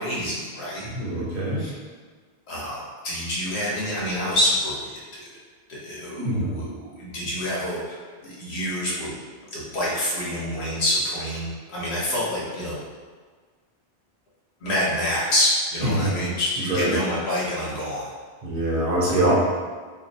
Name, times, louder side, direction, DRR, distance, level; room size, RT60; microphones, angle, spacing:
voice 1, 0.0-0.9 1.6-1.8 2.5-5.2 5.7-8.0 8.2-9.1 9.5-12.8 14.6-18.1, left 1 dB, 70° left, -6 dB, 1.2 m, -27 dB
voice 2, 0.9-1.7 6.2-6.7 15.8-16.3 16.6-17.0 18.4-19.3, right 1 dB, 55° right, -4 dB, 0.9 m, -24 dB
2.7 x 2.6 x 3.9 m, 1.5 s
omnidirectional pair, 1.1 m